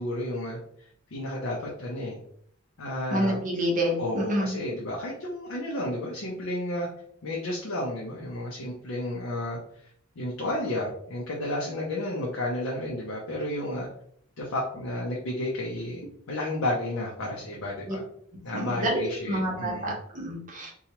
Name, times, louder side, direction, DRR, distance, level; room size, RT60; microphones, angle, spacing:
voice 1, 0.0-2.2 2.8-3.4 4.0-6.9 7.2-9.6 10.2-13.9 14.4-18.0 18.4-19.9, left 1 dB, 70° left, -2 dB, 0.6 m, -32 dB
voice 2, 3.1-4.6 17.9-18.0 18.5-20.7, equal, 40° right, -1 dB, 0.8 m, -28 dB
2.9 x 2.3 x 2.8 m, 0.65 s
head